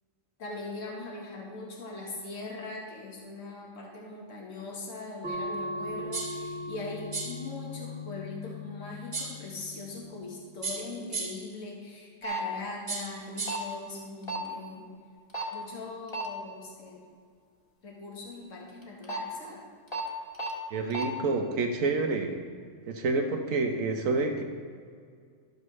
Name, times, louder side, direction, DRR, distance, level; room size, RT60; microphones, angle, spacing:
voice 1, 0.4-14.9 15.5-17.1 17.8-19.6, left 3 dB, 75° left, -3 dB, 1.8 m, -41 dB
sound 1, 5.2-10.3, left 1 dB, 60° right, 1.5 m, -39 dB
sound 2, 6.1-6.5 7.1-7.5 9.1-9.5 10.6-11.5 12.9-13.7, right 4 dB, 35° right, 1.1 m, -36 dB
sound 3, 12.2-12.4 13.4-13.6 14.3-14.5 15.3-15.5 16.1-16.3 18.8-19.2 19.9-20.0 20.3-20.5 20.9-21.0, right 4 dB, 20° left, 1.5 m, -32 dB
voice 2, 20.7-22.3 22.9-24.4, right 3 dB, 85° right, 4 dB, 1.3 m, -28 dB
12.0 x 8.0 x 3.2 m, 2.1 s
omnidirectional pair, 1.4 m